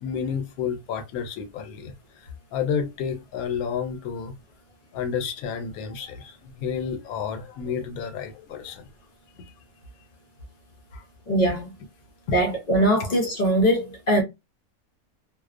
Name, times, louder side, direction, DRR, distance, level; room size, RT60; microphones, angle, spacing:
voice 1, 0.0-1.9 2.2-4.3 4.9-8.9 10.9-11.0, left 7 dB, 85° left, 1.1 m, -31 dB
voice 2, 11.3-11.7 12.3-14.2, right 1 dB, 60° left, 0.4 m, -21 dB
2.5 x 2.0 x 2.4 m
omnidirectional pair, 1.5 m